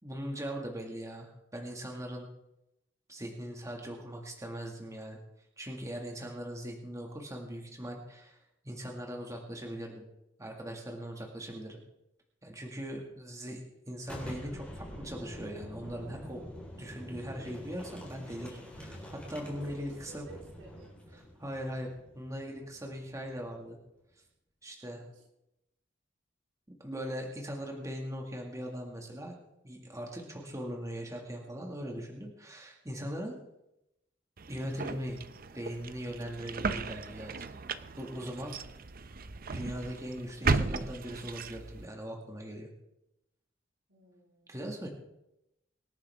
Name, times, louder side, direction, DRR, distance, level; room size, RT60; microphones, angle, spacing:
voice 1, 0.0-2.3 3.1-5.2 5.6-8.4 8.6-10.0 10.4-11.8 12.4-16.5 16.8-20.3 21.1-23.8 24.6-25.0 26.7-29.4 29.6-33.4 34.5-35.2 35.5-37.3 38.0-38.6 39.5-42.7 44.5-44.9, equal, 15° right, 1 dB, 2.0 m, -40 dB
Boom, 14.0-23.6, equal, 5° left, 4.5 m, -46 dB
voice 2, 19.5-21.4 25.1-25.3 43.9-44.6, right 3 dB, 75° right, -1 dB, 3.6 m, -56 dB
sound 1, 34.4-41.9, right 4 dB, 50° right, 0.7 m, -36 dB
25.0 x 9.9 x 3.6 m, 0.87 s
head